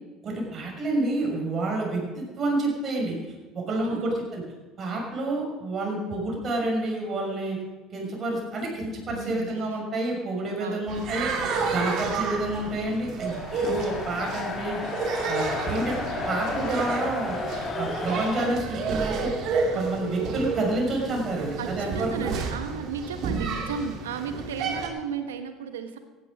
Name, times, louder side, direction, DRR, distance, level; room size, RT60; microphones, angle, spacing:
voice 1, 0.2-3.2 3.5-4.4 4.8-7.6 7.9-14.8 15.3-16.0 16.3-17.4 17.8-22.3, right 2 dB, 40° right, -1 dB, 5.9 m, -29 dB
voice 2, 3.7-4.1 9.1-9.6 10.6-10.9 11.1-12.1 19.7-19.8 21.6-26.0, right 6 dB, 85° right, 8 dB, 1.3 m, -35 dB
sound 1, 10.9-24.9, right 4 dB, 60° right, 2.4 m, -31 dB
sound 2, 13.2-18.5, left 4 dB, 40° left, 3.3 m, -33 dB
15.0 x 10.5 x 6.4 m, 1.2 s
hypercardioid pair, 70°, 0 cm